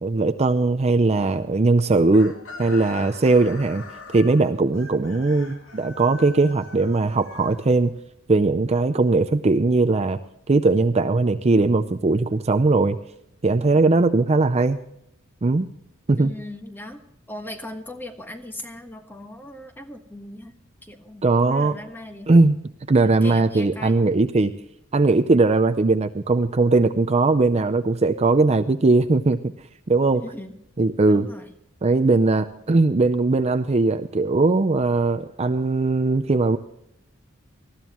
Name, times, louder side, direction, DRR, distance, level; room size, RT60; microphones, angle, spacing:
voice 1, 0.0-3.8 4.1-7.9 8.3-10.2 10.5-13.0 13.4-14.8 15.4-15.7 16.1-16.3 21.2-21.7 22.3-22.6 22.9-24.5 24.9-29.4 29.9-30.2 30.8-31.3 31.8-36.6, right 3 dB, 30° right, 9 dB, 0.5 m, -19 dB
Chicken rooster, 2.1-8.1, left 3 dB, 75° left, 2.5 m, -42 dB
voice 2, 16.2-22.3 23.0-23.9 30.1-30.5 31.1-31.5, left 1 dB, 10° left, 6 dB, 1.4 m, -38 dB
19.5 x 14.5 x 3.0 m, 0.76 s
head